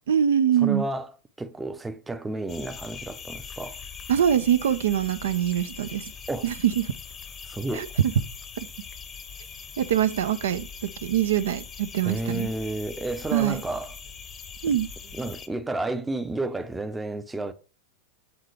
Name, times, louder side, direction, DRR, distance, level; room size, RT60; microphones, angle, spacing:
voice 1, 0.1-0.9 4.1-6.1 6.4-6.8 7.7-7.9 9.8-12.5 13.3-13.6 14.6-14.9, right 10 dB, 70° right, 0.5 m, -24 dB
voice 2, 0.6-1.1 1.4-3.8 6.3-6.5 7.4-7.9 12.0-13.9 14.6-14.8 15.1-17.5, right 2 dB, 10° right, 0.6 m, -31 dB
sound 1, 2.5-15.5, left 6 dB, 25° left, 0.8 m, -42 dB
7.9 x 3.7 x 3.3 m
figure-of-eight pair, 90°, 0 cm